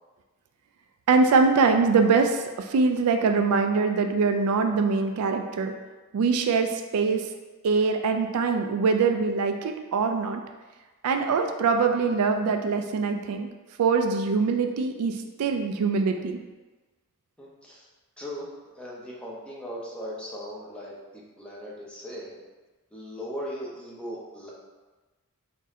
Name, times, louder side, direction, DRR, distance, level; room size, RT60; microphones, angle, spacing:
voice 1, 1.1-5.7 6.1-7.3 7.6-10.4 11.0-13.5 13.8-16.4, right 4 dB, 80° right, 5 dB, 0.4 m, -23 dB
voice 2, 17.4-17.9 18.2-22.4 22.9-24.5, equal, 5° left, -6 dB, 0.8 m, -38 dB
4.0 x 2.6 x 3.6 m, 1.2 s
head